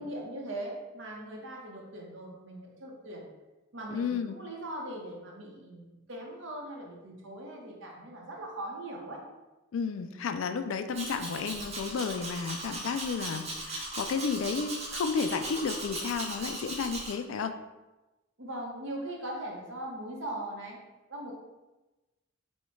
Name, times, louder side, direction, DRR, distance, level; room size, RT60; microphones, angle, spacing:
voice 1, 0.0-3.2 3.7-9.2 18.4-20.8 21.1-21.3, right 1 dB, 55° right, -1 dB, 0.8 m, -40 dB
voice 2, 3.9-4.4 9.7-17.5, left 5 dB, 65° left, 9 dB, 0.3 m, -32 dB
Domestic sounds home sounds, 10.9-17.1, right 2 dB, 30° right, 0.6 m, -38 dB
4.3 x 2.2 x 4.4 m, 1.1 s
head